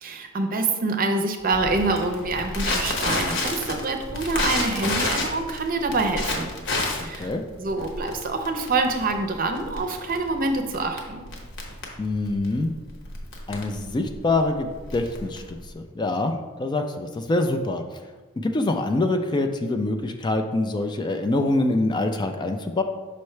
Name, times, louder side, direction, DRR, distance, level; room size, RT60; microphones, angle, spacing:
voice 1, 0.0-6.5 7.0-7.3 7.6-11.2, right 3 dB, 45° right, 5 dB, 0.6 m, -26 dB
Crackle, 1.5-15.7, left 2 dB, 60° left, 1.1 m, -30 dB
voice 2, 12.0-12.7 13.5-14.7 14.9-17.8 18.4-22.8, left 2 dB, 20° left, 6 dB, 0.3 m, -25 dB
5.7 x 5.3 x 3.2 m, 1.3 s
head